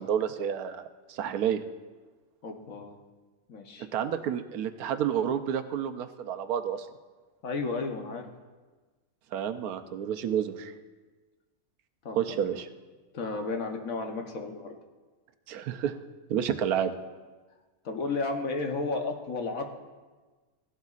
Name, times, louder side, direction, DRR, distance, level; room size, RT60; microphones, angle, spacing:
voice 1, 0.0-1.6 3.9-6.9 9.3-10.7 12.1-12.7 15.5-16.0 16.3-16.9, right 9 dB, 80° right, 8 dB, 1.1 m, -30 dB
voice 2, 2.4-3.0 3.5-3.9 7.4-8.3 12.0-12.5 13.1-14.7 17.8-19.7, left 3 dB, 65° left, 4 dB, 1.4 m, -33 dB
16.5 x 12.0 x 2.4 m, 1.3 s
omnidirectional pair, 1.6 m